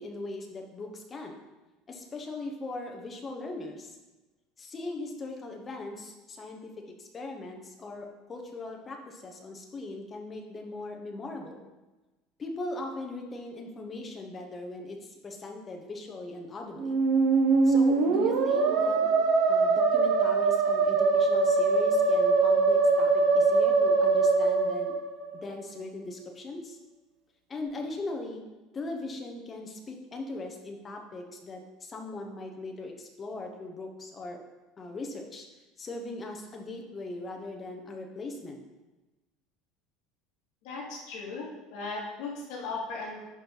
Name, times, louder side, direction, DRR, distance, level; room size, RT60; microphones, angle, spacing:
voice 1, 0.0-1.4 1.9-4.0 4.6-6.7 7.0-11.6 12.4-17.0 17.6-19.0 19.5-24.9 25.3-26.8 27.5-28.4 28.7-34.4 34.8-35.5 35.8-38.6, left 2 dB, 15° left, 2 dB, 0.9 m, -39 dB
Musical instrument, 16.8-25.5, right 4 dB, 60° right, 1.0 m, -23 dB
voice 2, 40.6-43.2, left 3 dB, 55° left, -4 dB, 2.3 m, -37 dB
10.5 x 4.5 x 3.9 m, 1.1 s
cardioid pair, 180°, 0 cm